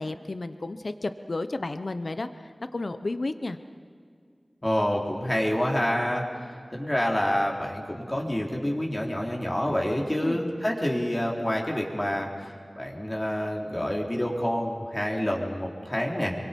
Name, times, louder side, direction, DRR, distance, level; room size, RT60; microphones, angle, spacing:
voice 1, 0.0-2.3 2.7-3.6 10.2-10.4, left 2 dB, 65° left, 10 dB, 0.9 m, -32 dB
voice 2, 4.6-6.2 6.7-12.3 12.8-16.4, equal, 25° left, -1 dB, 4.0 m, -27 dB
27.0 x 24.0 x 5.4 m, 2.2 s
wide cardioid pair, 45°, 0 cm